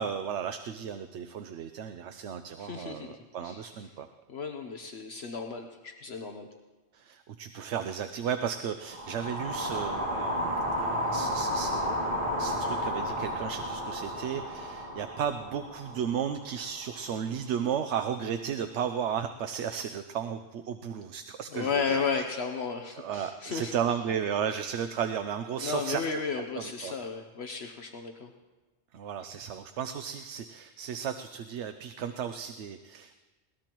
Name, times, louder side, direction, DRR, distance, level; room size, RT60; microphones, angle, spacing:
voice 1, 0.0-4.1 6.9-12.1 12.4-22.2 22.9-26.2 26.6-26.9 28.9-33.2, right 8 dB, 85° right, 8 dB, 1.0 m, -34 dB
voice 2, 2.6-3.6 4.3-6.5 21.5-23.7 25.6-28.3, left 5 dB, 70° left, 4 dB, 1.1 m, -34 dB
sound 1, 8.9-17.1, equal, 50° right, 2.7 m, -32 dB
21.5 x 18.0 x 3.0 m, 1.2 s
omnidirectional pair, 1.1 m